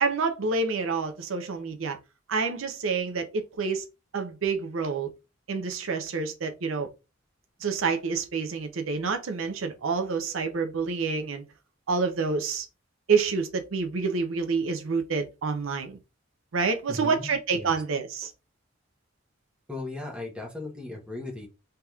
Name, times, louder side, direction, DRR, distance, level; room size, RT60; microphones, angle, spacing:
voice 1, 0.0-2.0 2.3-3.8 4.1-5.1 5.5-6.9 7.6-11.4 11.9-12.7 13.1-16.0 16.5-18.3, right 4 dB, 85° right, 0.6 m, -28 dB
voice 2, 16.9-17.7 19.7-21.5, left 2 dB, 5° right, 0.9 m, -37 dB
3.4 x 2.9 x 2.3 m
head